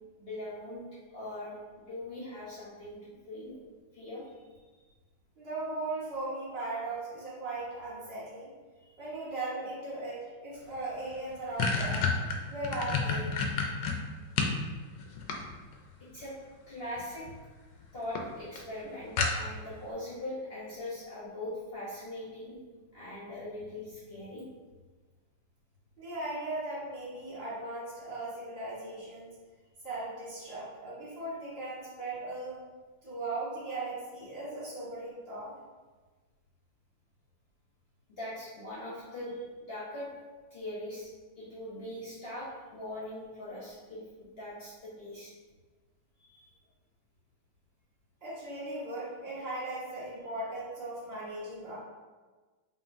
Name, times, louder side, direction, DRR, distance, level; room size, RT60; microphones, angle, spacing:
voice 1, 0.2-0.8 1.1-3.6 3.9-4.3 8.9-9.0 16.1-16.3 16.7-17.3 17.9-22.6 22.9-24.4 38.1-40.1 40.5-41.1 41.4-45.3 46.2-46.5, left 1 dB, 50° left, -7 dB, 0.8 m, -41 dB
voice 2, 5.4-8.5 9.0-12.1 12.5-13.4 24.2-24.3 26.0-29.3 29.8-32.6 33.0-35.5 48.2-51.7, right 2 dB, 35° right, -9 dB, 1.4 m, -38 dB
sound 1, 10.7-10.8 11.1-14.6 15.0-15.9 17.0-17.4 17.7-17.8 18.2-18.3 18.6-18.7 19.2-19.7, left 5 dB, 75° left, 1.1 m, -30 dB
5.0 x 2.6 x 2.6 m, 1.3 s
omnidirectional pair, 2.0 m